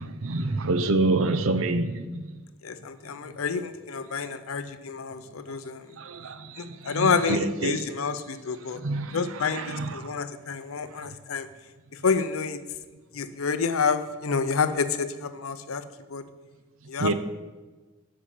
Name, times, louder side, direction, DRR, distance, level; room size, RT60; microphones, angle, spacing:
voice 1, 0.0-2.3 6.0-8.0 8.7-9.2 9.5-10.2 17.0-17.1, right 2 dB, 70° right, 0.6 m, -27 dB
voice 2, 2.6-5.9 6.6-8.8 9.1-11.5 11.9-12.6 13.1-15.8 16.1-16.2 16.9-17.1, left 5 dB, 75° left, 0.6 m, -28 dB
7.5 x 5.6 x 7.0 m
head